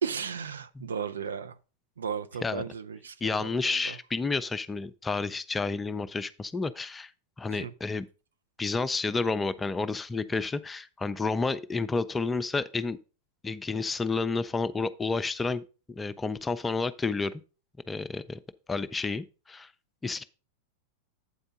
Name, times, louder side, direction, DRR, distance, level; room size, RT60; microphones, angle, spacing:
voice 1, 0.0-1.6 2.0-4.0 7.5-7.7, right 6 dB, 70° right, 0.5 m, -35 dB
voice 2, 3.2-7.1 7.4-8.1 8.6-13.0 13.4-15.6 16.0-17.3 17.9-18.4 18.7-19.7 20.0-20.2, left 4 dB, 15° left, 0.4 m, -30 dB
8.2 x 4.4 x 5.2 m
figure-of-eight pair, 90°, 0 cm